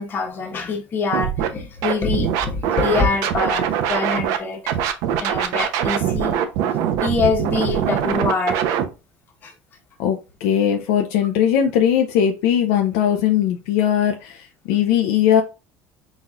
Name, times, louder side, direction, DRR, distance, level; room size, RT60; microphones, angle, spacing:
voice 1, 0.0-4.6 5.2-6.3 7.0-8.6 9.4-9.5, left 4 dB, 35° left, 1.2 m, -24 dB
Scratching (performance technique), 1.1-1.5 1.8-4.4 4.7-8.8, right 9 dB, 75° right, 0.7 m, -22 dB
voice 2, 10.0-15.4, left 9 dB, 85° left, 0.6 m, -19 dB
4.1 x 4.1 x 2.4 m
cardioid pair, 120°, 6 cm